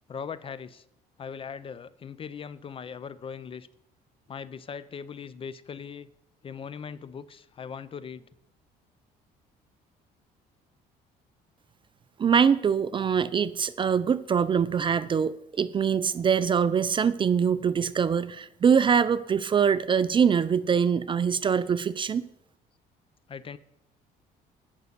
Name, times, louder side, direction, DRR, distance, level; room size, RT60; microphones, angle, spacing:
voice 1, 0.1-0.8 1.2-3.7 4.3-6.1 6.4-8.2 23.3-23.6, left 6 dB, 35° left, 17 dB, 0.4 m, -39 dB
voice 2, 12.2-22.2, right 7 dB, 30° right, 16 dB, 0.4 m, -23 dB
9.4 x 5.4 x 6.7 m, 0.78 s
cardioid pair, 110°, 17 cm